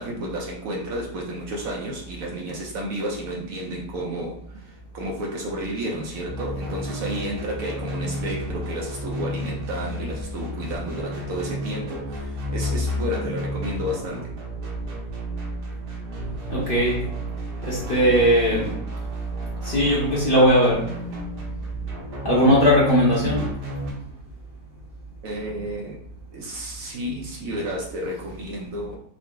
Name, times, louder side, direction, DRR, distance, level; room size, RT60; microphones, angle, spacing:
voice 1, 0.0-14.3 25.2-26.0 26.3-29.0, right 1 dB, 65° right, -1 dB, 0.9 m, -31 dB
sound 1, 6.2-23.9, right 1 dB, 85° right, 1.6 m, -32 dB
voice 2, 16.5-17.1 17.6-18.8 19.6-20.9 22.2-23.5, equal, 45° left, -6 dB, 0.8 m, -19 dB
3.8 x 2.1 x 3.4 m, 0.69 s
omnidirectional pair, 1.8 m